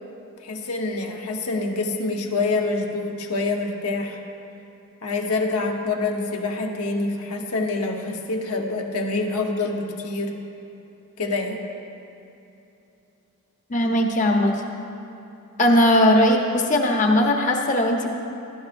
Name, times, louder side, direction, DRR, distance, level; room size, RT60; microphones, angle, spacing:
voice 1, 0.4-4.2 5.0-10.4 11.2-11.6, left 3 dB, 85° left, 2 dB, 1.1 m, -26 dB
voice 2, 13.7-14.5 15.6-18.1, left 1 dB, 35° left, 2 dB, 0.9 m, -19 dB
17.0 x 11.5 x 2.6 m, 2.9 s
head